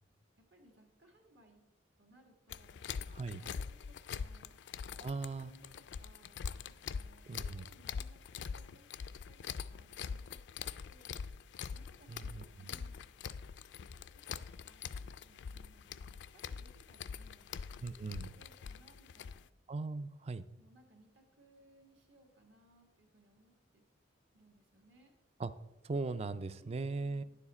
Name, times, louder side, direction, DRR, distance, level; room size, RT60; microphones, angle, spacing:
voice 1, 0.4-1.7 2.0-3.1 3.4-3.6 3.9-4.7 5.0-5.7 6.0-11.2 11.7-13.6 14.1-19.5 20.6-23.8 24.3-25.1, right 1 dB, 70° right, 2 dB, 1.9 m, -65 dB
sound 1, 2.5-19.4, left 6 dB, 65° left, 0.3 m, -44 dB
voice 2, 5.0-5.5 7.3-7.7 12.1-12.4 17.8-18.3 19.7-20.4 25.4-25.5 25.8-27.2, right 3 dB, 35° right, 14 dB, 0.3 m, -39 dB
10.0 x 7.2 x 4.2 m, 1.1 s
head